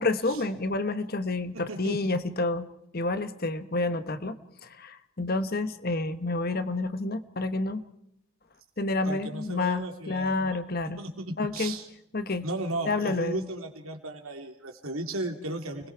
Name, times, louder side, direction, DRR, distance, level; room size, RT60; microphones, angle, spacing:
voice 1, 0.0-2.7 2.9-4.4 4.8-7.8 8.8-11.0 11.4-11.7 12.1-12.5 12.9-13.4, left 2 dB, 45° left, 11 dB, 1.1 m, -29 dB
voice 2, 1.5-2.0 9.0-10.6 11.0-11.9 12.4-15.9, right 2 dB, 75° right, 4 dB, 2.8 m, -35 dB
30.0 x 21.0 x 4.7 m, 0.77 s
head